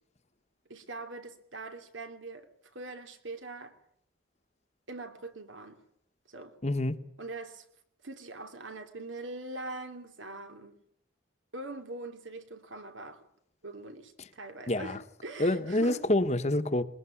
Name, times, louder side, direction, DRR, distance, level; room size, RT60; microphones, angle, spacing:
voice 1, 0.7-3.8 4.9-5.8 6.3-6.6 7.2-7.6 8.0-10.8 11.5-13.3 13.6-16.0, right 2 dB, 85° right, 2.8 m, -42 dB
voice 2, 6.6-7.0 14.7-15.0 15.4-16.8, left 1 dB, 35° left, 1.1 m, -27 dB
21.0 x 21.0 x 9.9 m
head